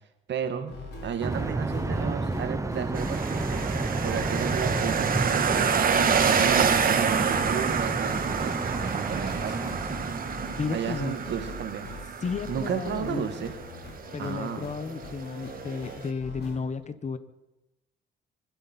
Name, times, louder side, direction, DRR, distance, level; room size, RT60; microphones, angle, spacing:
voice 1, 0.3-3.7 4.0-5.7 6.2-10.0 10.7-11.9 12.5-13.6 14.2-14.7, right 8 dB, 65° right, 8 dB, 1.7 m, -33 dB
sound 1, 0.7-16.6, left 2 dB, 55° left, 5.6 m, -42 dB
sound 2, 1.2-11.5, right 2 dB, 15° right, 0.9 m, -31 dB
sound 3, 2.9-16.1, right 6 dB, 45° right, 1.6 m, -28 dB
voice 2, 10.6-11.2 12.2-13.5 14.1-17.2, left 5 dB, 35° left, 12 dB, 1.4 m, -33 dB
25.5 x 12.5 x 4.5 m, 0.91 s
cardioid pair, 90°, 20 cm